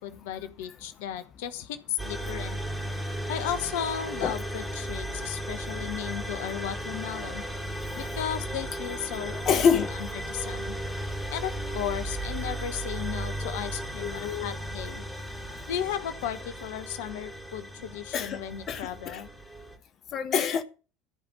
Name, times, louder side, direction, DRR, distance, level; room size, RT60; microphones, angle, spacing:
voice 1, 0.0-2.6 3.3-7.4 7.9-9.8 10.3-10.7 11.3-15.0 15.7-19.3, left 10 dB, 60° left, 1.1 m, -35 dB
sound 1, 2.0-19.8, right 1 dB, ahead, 3.5 m, -35 dB
voice 2, 9.4-9.9 13.0-13.1 13.4-13.6 14.0-14.5 18.1-18.4 18.7-19.2 20.1-20.6, left 7 dB, 40° left, 1.0 m, -26 dB
14.0 x 5.2 x 7.8 m
figure-of-eight pair, 65°, 0 cm